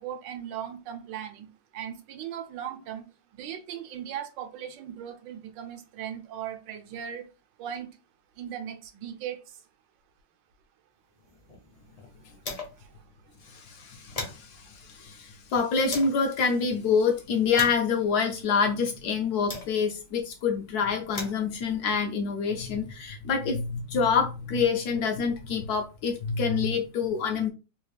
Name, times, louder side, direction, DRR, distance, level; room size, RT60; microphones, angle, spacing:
voice 1, 0.0-1.5 1.7-3.0 3.3-7.3 7.6-7.9 8.4-9.6 12.8-13.0, right 9 dB, 80° right, 1.3 m, -38 dB
sound 1, 11.2-13.0 13.3-13.4 13.7-16.3 16.9-20.1 20.8-23.0, left 3 dB, 45° left, 0.5 m, -42 dB
voice 2, 13.5-27.5, left 5 dB, 70° left, 0.9 m, -27 dB
3.4 x 2.3 x 3.3 m
omnidirectional pair, 2.0 m